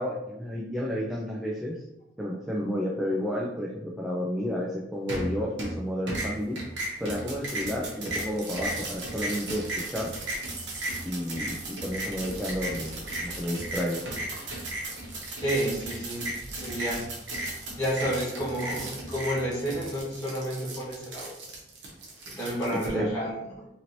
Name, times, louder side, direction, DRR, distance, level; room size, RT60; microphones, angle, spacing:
voice 1, 0.0-1.8 2.2-6.6 7.0-10.1 11.0-14.1 22.7-23.1, equal, 5° right, -5 dB, 0.3 m, -31 dB
sound 1, 5.1-5.8 6.1-22.9, right 1 dB, 80° right, 0.9 m, -35 dB
voice 2, 12.5-13.4 13.6-13.7 15.1-17.1 17.4-21.3 22.3-23.6, right 1 dB, 15° left, -9 dB, 1.3 m, -32 dB
2.9 x 2.9 x 2.6 m, 0.87 s
head